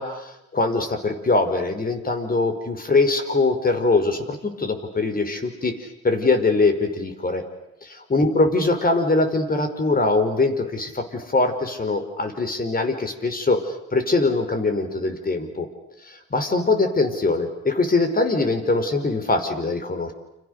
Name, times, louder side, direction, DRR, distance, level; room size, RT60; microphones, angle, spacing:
voice 1, 0.0-7.4 7.8-15.7 16.1-20.1, left 3 dB, 30° left, 7 dB, 5.3 m, -22 dB
29.5 x 28.5 x 6.8 m, 0.88 s
cardioid pair, 90°, 30 cm